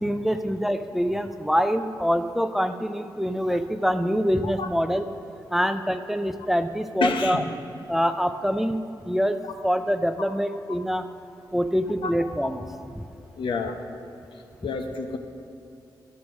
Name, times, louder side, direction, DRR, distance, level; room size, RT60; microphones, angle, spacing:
voice 1, 0.0-5.1 5.5-7.4 7.9-11.0 11.5-13.1, equal, 5° right, 9 dB, 0.4 m, -25 dB
voice 2, 7.0-7.4 12.0-12.1 13.3-13.8 14.6-15.2, left 4 dB, 85° left, 5 dB, 0.8 m, -28 dB
12.5 x 4.7 x 6.2 m, 2.8 s
wide cardioid pair, 120°, 8 cm